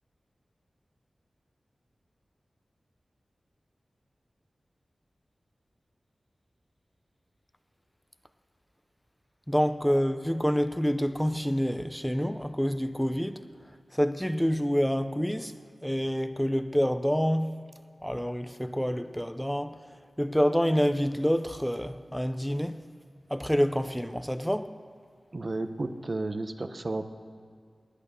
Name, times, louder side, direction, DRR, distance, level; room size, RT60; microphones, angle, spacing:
voice 1, 9.5-13.4 13.9-15.5 15.8-17.5 18.0-19.8 20.2-22.8 23.3-24.7, equal, 5° left, 0.6 m, -27 dB
voice 2, 25.3-27.1, right 2 dB, 50° right, 0.9 m, -32 dB
20.0 x 8.7 x 6.8 m
cardioid pair, 45°, 0 cm